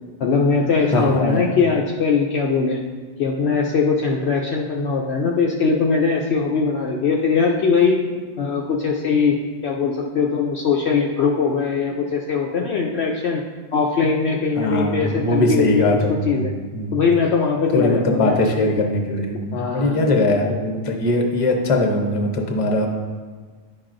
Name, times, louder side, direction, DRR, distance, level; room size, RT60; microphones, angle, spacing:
voice 1, 0.2-2.8 3.2-9.4 9.6-13.4 13.7-15.9 16.3-16.5 16.9-18.4 19.5-20.0, left 5 dB, 60° left, -1 dB, 0.8 m, -21 dB
voice 2, 0.9-1.5 14.6-16.4 16.7-17.0 17.7-22.9, left 1 dB, 30° left, 2 dB, 0.8 m, -20 dB
10.5 x 5.8 x 2.5 m, 1.5 s
omnidirectional pair, 1.4 m